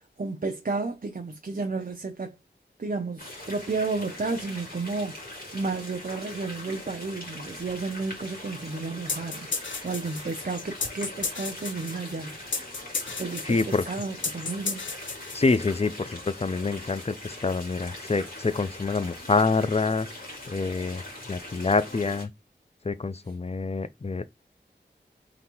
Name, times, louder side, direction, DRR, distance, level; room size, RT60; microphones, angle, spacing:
voice 1, 0.0-2.4 2.8-12.4 13.1-14.9, right 3 dB, 45° right, 0.6 m, -32 dB
sound 1, 3.2-22.2, left 1 dB, 50° left, 2.3 m, -42 dB
sound 2, 9.1-15.8, left 4 dB, 80° left, 0.6 m, -34 dB
voice 2, 13.5-13.8 15.3-20.1 20.5-22.3 22.8-24.2, left 3 dB, 35° left, 0.5 m, -26 dB
3.9 x 3.3 x 2.9 m
wide cardioid pair, 45°, 19 cm